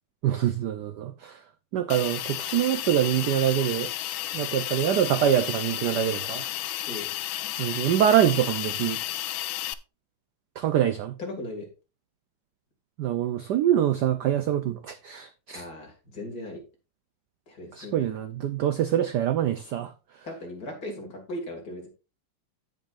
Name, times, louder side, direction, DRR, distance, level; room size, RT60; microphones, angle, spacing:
voice 1, 0.2-1.4 1.7-3.9 4.3-6.5 7.6-9.0 10.6-11.1 13.0-15.6 17.7-19.9, right 10 dB, 70° right, 1.0 m, -25 dB
Hiss, 1.9-9.7, left 14 dB, 75° left, 1.2 m, -32 dB
voice 2, 11.2-11.7 15.5-16.6 17.5-18.1 20.2-21.9, left 1 dB, 45° left, 2.7 m, -37 dB
16.0 x 5.4 x 2.5 m
omnidirectional pair, 2.4 m